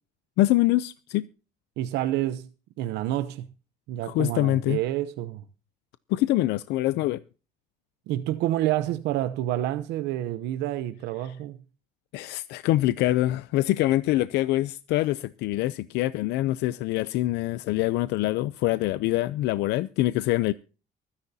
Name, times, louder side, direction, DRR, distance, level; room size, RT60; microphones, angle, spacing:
voice 1, 0.4-1.3 4.0-4.8 6.1-7.2 12.1-20.5, left 16 dB, 85° left, 0.6 m, -24 dB
voice 2, 1.8-2.5 2.8-3.5 3.9-5.4 8.1-11.6, right 13 dB, 90° right, 0.8 m, -28 dB
24.0 x 10.0 x 2.8 m
cardioid pair, 110°, 17 cm